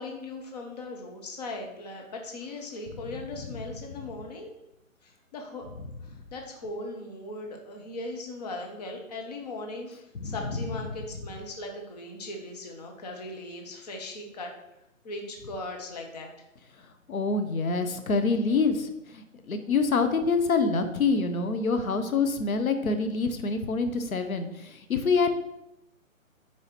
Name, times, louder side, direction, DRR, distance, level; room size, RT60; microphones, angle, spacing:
voice 1, 0.0-4.5 5.0-5.6 6.0-9.9 10.2-14.5 15.0-16.3, left 2 dB, 30° left, 2 dB, 0.9 m, -38 dB
voice 2, 17.1-25.4, left 4 dB, 85° left, 7 dB, 0.9 m, -26 dB
6.9 x 4.8 x 3.1 m, 0.86 s
hypercardioid pair, 155°, 41 cm